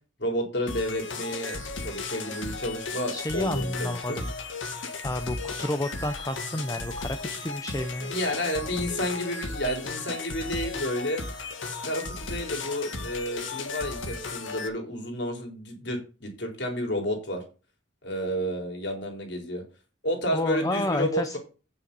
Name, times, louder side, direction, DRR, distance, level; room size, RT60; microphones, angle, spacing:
voice 1, 0.2-4.2 8.1-11.2 11.8-17.4 18.0-19.6 20.0-21.4, equal, 60° left, 3 dB, 4.0 m, -31 dB
sound 1, 0.7-14.7, left 3 dB, 75° left, 2.1 m, -35 dB
voice 2, 3.1-4.3 5.0-8.1 20.3-21.4, left 1 dB, 15° left, 9 dB, 0.7 m, -30 dB
9.3 x 7.0 x 5.3 m, 0.34 s
head